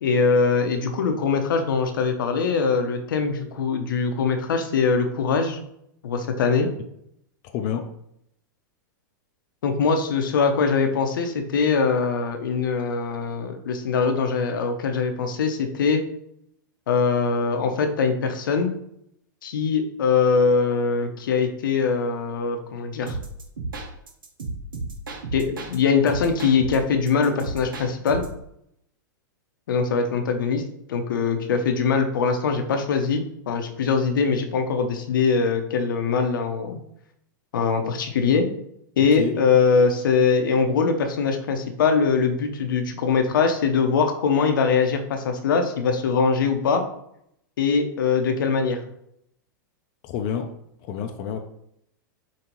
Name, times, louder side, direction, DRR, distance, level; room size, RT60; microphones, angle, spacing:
voice 1, 0.0-5.6 6.0-6.7 9.6-16.0 16.9-18.7 19.4-23.2 25.3-28.2 29.7-30.6 30.9-36.8 37.5-38.5 39.0-46.8 47.6-48.8, left 5 dB, 75° left, 5 dB, 0.7 m, -22 dB
voice 2, 7.4-7.9 39.1-39.4 50.0-50.5 50.8-51.4, left 8 dB, 45° left, 5 dB, 0.5 m, -29 dB
sound 1, 23.1-25.8 26.1-28.4, right 2 dB, 85° right, 1.0 m, -33 dB
5.3 x 2.8 x 3.0 m, 0.74 s
hypercardioid pair, 115°, 11 cm